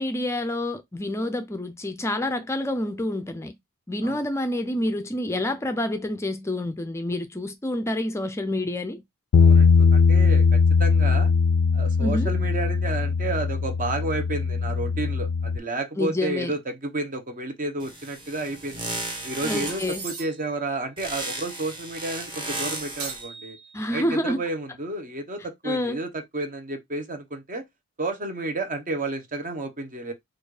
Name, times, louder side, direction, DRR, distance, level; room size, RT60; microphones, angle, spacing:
voice 1, 0.0-3.5 3.9-9.0 12.0-12.3 16.0-16.5 19.4-20.0 23.7-24.4 25.6-26.0, left 1 dB, 10° left, 0.4 m, -28 dB
Bass guitar, 9.3-15.6, left 5 dB, 90° left, 0.4 m, -20 dB
voice 2, 9.4-11.3 11.7-18.9 19.2-23.6 23.9-27.6 28.0-30.1, right 2 dB, 40° right, 1.0 m, -31 dB
sound 1, 17.8-20.0 21.0-23.3, right 2 dB, 25° right, 1.3 m, -34 dB
sound 2, 19.7-20.6 23.0-24.1, right 4 dB, 70° right, 1.5 m, -39 dB
4.3 x 2.4 x 4.8 m
head